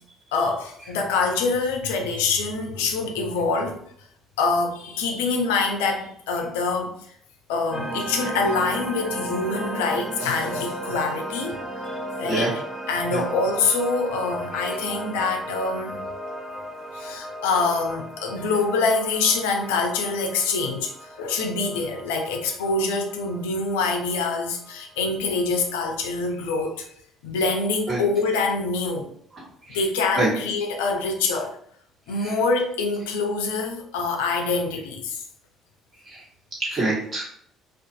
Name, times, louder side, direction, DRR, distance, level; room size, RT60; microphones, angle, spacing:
voice 1, 0.3-3.8 4.4-7.0 7.5-11.5 12.2-12.6 12.9-16.0 16.9-20.9 21.2-26.9 27.2-29.1 29.7-31.6 32.1-35.2, left 4 dB, 75° left, 3 dB, 0.4 m, -25 dB
sound 1, 7.7-24.7, right 1 dB, 15° right, 0.8 m, -35 dB
voice 2, 36.6-37.3, right 2 dB, 40° right, -6 dB, 1.3 m, -25 dB
2.4 x 2.3 x 2.6 m, 0.66 s
hypercardioid pair, 55°, 0 cm